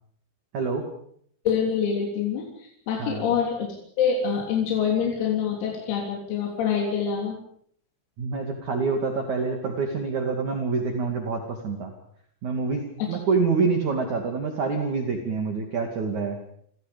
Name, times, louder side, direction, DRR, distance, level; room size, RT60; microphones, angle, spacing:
voice 1, 0.5-0.8 3.0-3.3 8.2-11.9 12.4-16.4, right 4 dB, 45° right, 3 dB, 3.2 m, -26 dB
voice 2, 1.5-7.4, left 7 dB, 85° left, -1 dB, 6.1 m, -26 dB
29.5 x 26.0 x 5.3 m, 0.67 s
omnidirectional pair, 6.0 m